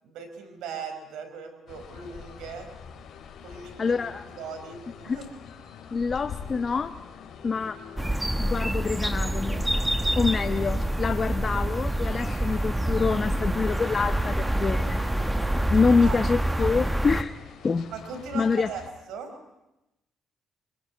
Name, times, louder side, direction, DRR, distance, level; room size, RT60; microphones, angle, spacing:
voice 1, 0.0-2.7 3.4-4.0 4.4-5.3 16.0-16.2 17.9-19.4, right 5 dB, 90° right, 7 dB, 4.8 m, -39 dB
sound 1, 1.7-18.9, left 7 dB, 65° left, 3.3 m, -45 dB
voice 2, 3.8-4.2 5.0-5.2 5.9-6.9 7.4-7.8 8.4-9.6 10.2-15.0 15.7-17.4 17.6-17.9 18.3-18.7, left 5 dB, 40° left, 9 dB, 1.0 m, -26 dB
sound 2, 8.0-17.2, right 1 dB, 10° right, 1.1 m, -26 dB
24.5 x 21.5 x 9.3 m, 0.93 s
cardioid pair, 90°, 0 cm